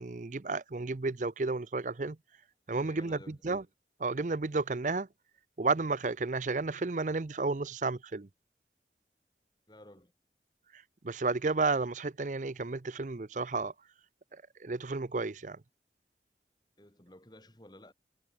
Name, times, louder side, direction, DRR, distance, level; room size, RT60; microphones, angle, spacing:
voice 1, 0.0-2.2 2.7-3.6 4.0-5.1 5.6-8.3 10.7-13.7 14.3-15.6, right 3 dB, 45° right, 0.6 m, -32 dB
voice 2, 2.8-3.4 9.7-10.1 16.8-17.9, left 1 dB, 25° left, 3.3 m, -54 dB
head